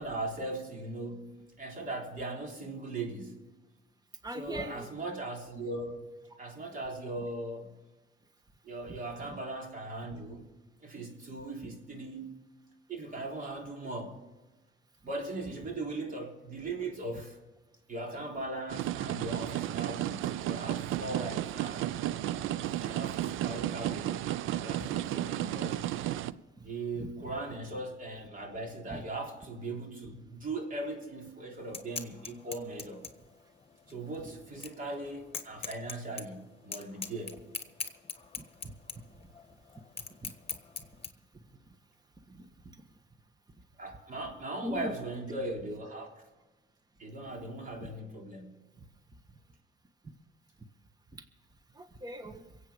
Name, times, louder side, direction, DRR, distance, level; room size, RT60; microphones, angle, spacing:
voice 1, 0.0-3.5 4.3-6.0 6.4-7.7 8.6-10.5 10.8-12.3 12.9-14.2 15.0-17.4 17.9-22.0 22.8-25.8 26.6-33.0 33.9-37.5 43.8-46.3 47.0-48.6, right 2 dB, 45° right, 3.5 m, -39 dB
voice 2, 4.2-4.9 8.9-9.0 9.3-9.4 22.3-22.5 23.6-23.7 27.0-27.1 28.9-29.0 38.4-38.7 40.2-40.3 42.3-42.8 44.6-44.9 50.0-50.1 51.1-51.2 51.7-52.6, right 1 dB, 20° right, 1.4 m, -42 dB
sound 1, 18.7-26.3, right 13 dB, 85° right, 0.5 m, -33 dB
sound 2, 31.6-41.1, left 5 dB, 30° left, 1.4 m, -43 dB
23.0 x 8.4 x 5.1 m
cardioid pair, 90°, 20 cm